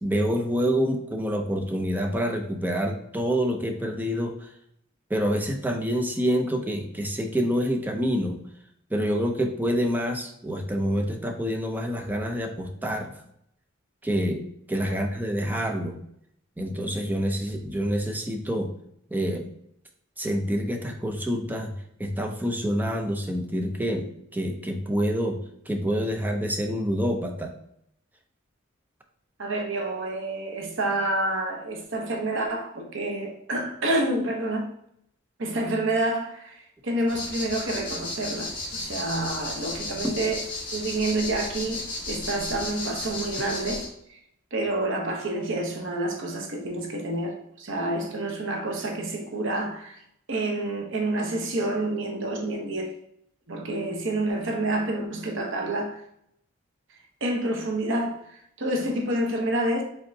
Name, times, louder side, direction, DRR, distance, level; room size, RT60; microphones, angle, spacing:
voice 1, 0.0-4.3 5.1-8.4 8.9-13.1 14.0-14.4 14.7-16.0 16.6-18.7 19.1-19.4 20.2-21.7 22.0-24.1 24.3-25.4 25.7-27.5 40.0-40.1, equal, 10° right, 0.5 m, -27 dB
voice 2, 29.4-34.7 35.4-40.4 40.7-41.8 42.1-44.2 44.5-50.0 50.3-52.9 53.5-56.0 57.2-59.8, right 1 dB, 65° right, 0.8 m, -28 dB
sound 1, 37.1-43.9, left 2 dB, 25° left, 1.7 m, -34 dB
5.2 x 3.6 x 2.7 m
head